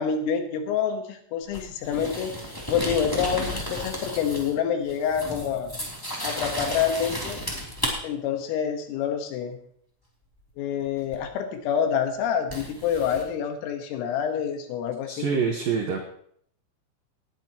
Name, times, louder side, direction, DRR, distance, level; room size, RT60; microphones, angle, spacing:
voice 1, 0.0-5.7 6.2-7.4 8.0-9.6 10.6-15.3, left 8 dB, 80° left, 5 dB, 4.0 m, -27 dB
sound 1, 1.5-4.6 4.9-7.9 11.1-11.2 12.5-13.2, equal, 10° left, 1.3 m, -33 dB
voice 2, 15.1-16.0, right 6 dB, 80° right, 2 dB, 2.0 m, -26 dB
19.5 x 10.5 x 3.0 m, 0.64 s
omnidirectional pair, 5.9 m